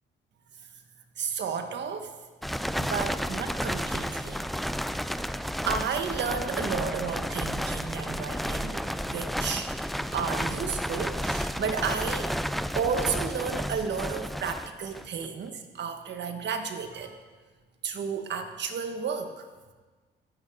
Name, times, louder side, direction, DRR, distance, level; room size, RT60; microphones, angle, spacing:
voice 1, 1.2-2.1 2.7-4.4 4.8-5.1 5.6-9.7 10.1-12.3 12.7-17.2 17.8-19.5, right 6 dB, 60° right, 6 dB, 1.6 m, -32 dB
sound 1, 2.4-15.2, equal, ahead, 0.4 m, -32 dB
15.5 x 13.0 x 3.8 m, 1.3 s
cardioid pair, 90°, 20 cm